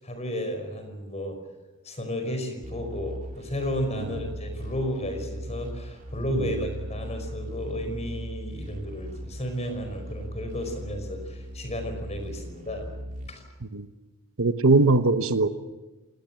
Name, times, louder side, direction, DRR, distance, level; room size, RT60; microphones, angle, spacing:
voice 1, 0.0-1.4 1.8-12.9 13.3-13.4, equal, 30° left, 6 dB, 5.1 m, -33 dB
sound 1, 2.6-13.3, equal, 35° right, 2.9 m, -38 dB
voice 2, 14.4-15.5, right 3 dB, 65° right, 10 dB, 1.1 m, -21 dB
27.5 x 18.5 x 7.6 m, 1.2 s
head